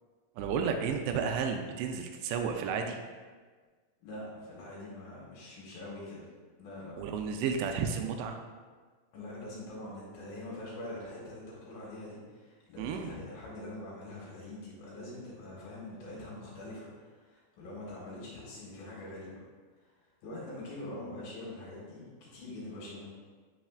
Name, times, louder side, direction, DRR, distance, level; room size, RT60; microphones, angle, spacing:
voice 1, 0.4-3.0 7.0-8.4 12.8-13.1, right 6 dB, 85° right, 5 dB, 2.7 m, -32 dB
voice 2, 4.0-6.2 6.6-7.1 9.1-19.4 19.8-19.9 20.2-23.1, left 1 dB, 65° left, -5 dB, 2.9 m, -44 dB
7.4 x 6.3 x 2.4 m, 1.5 s
omnidirectional pair, 5.0 m